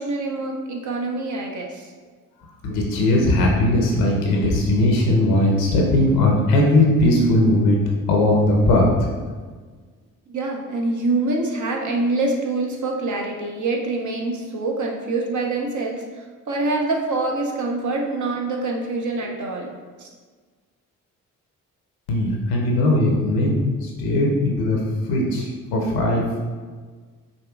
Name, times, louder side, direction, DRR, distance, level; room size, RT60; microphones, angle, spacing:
voice 1, 0.0-1.9 10.3-20.1, right 2 dB, 50° right, 0 dB, 0.8 m, -25 dB
voice 2, 2.6-9.1 22.1-24.8 25.1-25.5 25.7-26.4, left 1 dB, 80° left, -1 dB, 0.8 m, -19 dB
5.3 x 2.6 x 2.3 m, 1.5 s
hypercardioid pair, 40°, 38 cm